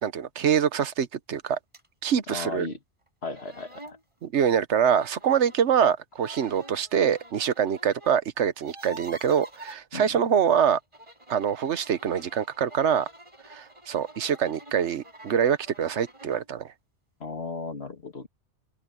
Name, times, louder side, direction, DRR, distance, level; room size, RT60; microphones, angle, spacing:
voice 1, 0.0-1.6 2.0-2.7 4.2-10.8 11.3-13.1 13.4-16.7, right 8 dB, 75° right, 1.2 m, -25 dB
sound 1, 1.7-1.9 2.3-2.4 3.1-3.2 3.3-4.0 4.9-5.6 6.1-8.2 8.5-9.8 10.8-16.5, right 1 dB, 25° right, 5.6 m, -48 dB
voice 2, 2.3-2.8 3.2-4.0 9.9-10.2 17.2-18.3, left 3 dB, 60° left, 2.4 m, -35 dB
omnidirectional pair, 1.2 m